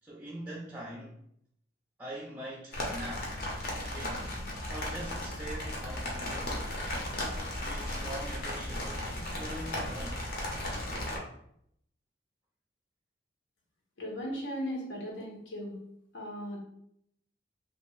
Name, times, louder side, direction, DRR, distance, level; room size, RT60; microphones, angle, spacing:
voice 1, 0.0-1.2 2.0-3.3 3.8-4.3 4.7-6.7 7.7-10.3, right 1 dB, 10° right, -4 dB, 0.4 m, -43 dB
sound 1, 2.7-11.2, left 1 dB, 50° left, 0.7 m, -35 dB
voice 2, 14.0-15.8 16.1-16.6, equal, 80° left, -2 dB, 0.9 m, -37 dB
2.7 x 2.5 x 3.1 m, 0.73 s
head